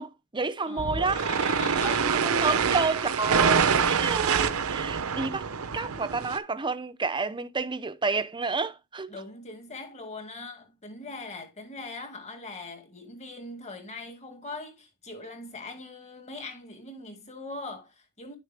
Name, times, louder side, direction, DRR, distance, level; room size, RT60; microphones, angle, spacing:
voice 1, 0.0-1.2 1.8-5.4 5.7-9.1, right 4 dB, 20° right, 0.7 m, -30 dB
voice 2, 0.7-3.0 9.1-18.3, left 3 dB, 30° left, 2.1 m, -41 dB
sound 1, 0.8-6.4, right 6 dB, 70° right, 0.8 m, -26 dB
10.5 x 6.5 x 3.5 m
head